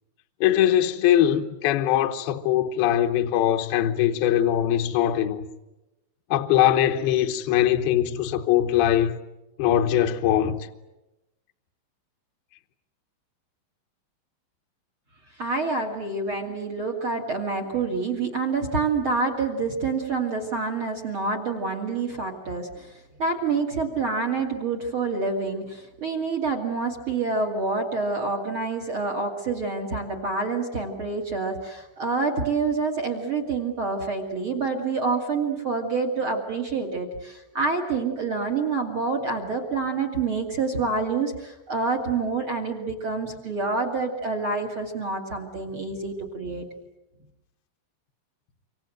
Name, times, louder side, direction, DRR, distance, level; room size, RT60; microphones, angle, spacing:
voice 1, 0.4-5.5 6.3-9.2 9.6-10.6, left 11 dB, 70° left, 2.5 m, -21 dB
voice 2, 15.4-46.7, right 4 dB, 40° right, 2.0 m, -27 dB
26.5 x 25.5 x 7.8 m
omnidirectional pair, 5.7 m